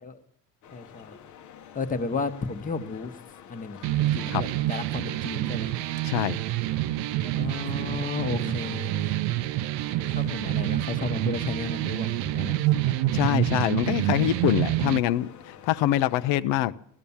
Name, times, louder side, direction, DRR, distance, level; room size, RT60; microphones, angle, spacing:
sound 1, 0.6-16.4, left 8 dB, 45° left, 0.9 m, -49 dB
voice 1, 0.7-1.2 1.7-3.1 3.5-5.7 7.4-9.5 10.1-12.6, left 4 dB, 20° left, 8 dB, 1.0 m, -33 dB
sound 2, 3.8-15.0, right 15 dB, 80° right, 0.7 m, -27 dB
voice 2, 6.0-6.4 13.1-16.7, left 13 dB, 80° left, 12 dB, 0.7 m, -24 dB
16.0 x 12.0 x 7.1 m, 0.67 s
cardioid pair, 150°, 42 cm